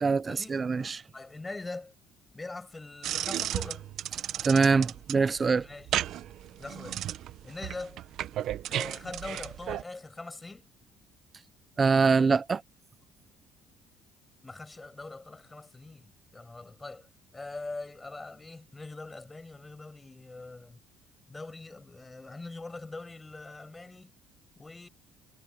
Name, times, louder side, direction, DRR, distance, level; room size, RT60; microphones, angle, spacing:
voice 1, 0.0-1.0 4.4-5.7 11.8-12.6, right 4 dB, 20° right, 0.5 m, -24 dB
voice 2, 1.1-1.9 2.3-3.9 5.6-5.9 6.6-7.0 7.4-8.0 8.7-10.7 14.4-20.8 21.3-24.1 24.6-24.9, left 3 dB, 10° left, 7.4 m, -42 dB
sound 1, 3.0-9.8, right 12 dB, 55° right, 0.7 m, -34 dB
cardioid pair, 170°, 0 cm